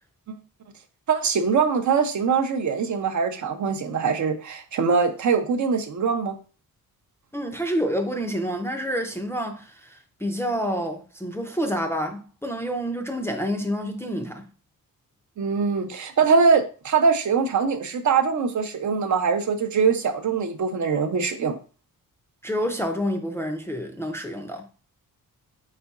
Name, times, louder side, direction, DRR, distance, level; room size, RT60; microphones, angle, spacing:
voice 1, 1.1-6.4 15.4-21.6, right 5 dB, 55° right, 0.5 m, -22 dB
voice 2, 7.3-14.4 22.4-24.6, equal, 5° left, 0.4 m, -28 dB
4.5 x 4.1 x 2.3 m
wide cardioid pair, 135°, 36 cm